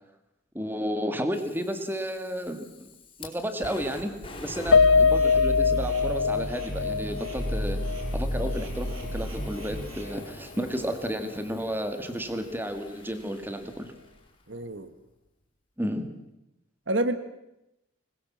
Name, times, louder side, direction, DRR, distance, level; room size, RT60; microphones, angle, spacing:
voice 1, 0.5-2.9 3.2-4.1 4.4-7.8 8.1-13.9 15.8-16.1, equal, 10° right, 8 dB, 2.0 m, -32 dB
Fire, 1.3-14.4, left 2 dB, 25° left, 4.6 m, -46 dB
Piano, 4.7-9.2 9.6-9.7 10.1-10.2, left 5 dB, 70° left, 1.0 m, -23 dB
sound 1, 4.7-10.0, equal, 85° right, 7.0 m, -32 dB
voice 2, 14.5-14.9 16.9-17.2, right 1 dB, 60° right, 11 dB, 1.4 m, -27 dB
26.0 x 20.5 x 7.5 m, 0.90 s
head